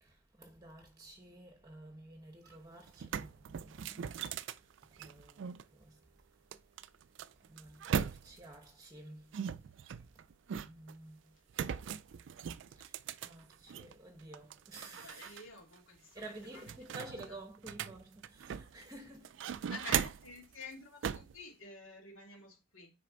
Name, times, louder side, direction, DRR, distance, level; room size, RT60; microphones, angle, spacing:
voice 1, 0.0-4.1 5.0-5.9 7.5-9.4 10.6-11.2 12.8-15.5 16.1-19.7, right 2 dB, 15° right, 0.9 m, -52 dB
sound 1, 2.5-2.6 2.9-5.6 6.5-8.5 9.3-10.9 11.5-13.9 14.3-15.4 15.7-15.8 16.2-18.8 19.2-20.4 21.0-21.4, right 8 dB, 65° right, 0.3 m, -39 dB
voice 2, 14.8-16.2 16.5-16.6 17.0-17.4 19.7-22.9, left 3 dB, 90° left, 2.5 m, -50 dB
6.4 x 4.2 x 3.9 m
head